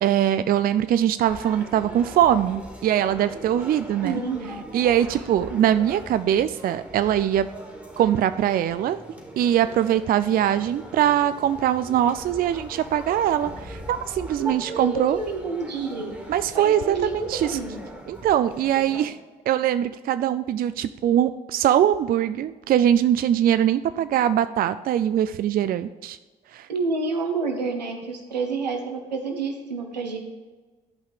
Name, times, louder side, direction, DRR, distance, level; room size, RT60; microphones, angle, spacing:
voice 1, 0.0-4.2 4.7-7.5 8.0-9.0 9.4-15.2 16.3-17.6 18.1-19.2 19.5-26.2 26.5-26.7, right 10 dB, 45° right, 12 dB, 0.4 m, -22 dB
sound 1, 1.2-19.1, equal, 5° right, 3.2 m, -41 dB
voice 2, 4.0-4.5 14.4-16.2 16.5-17.8 26.7-30.2, right 4 dB, 85° right, 4 dB, 1.0 m, -28 dB
11.0 x 5.6 x 5.2 m, 1.2 s
figure-of-eight pair, 45°, 21 cm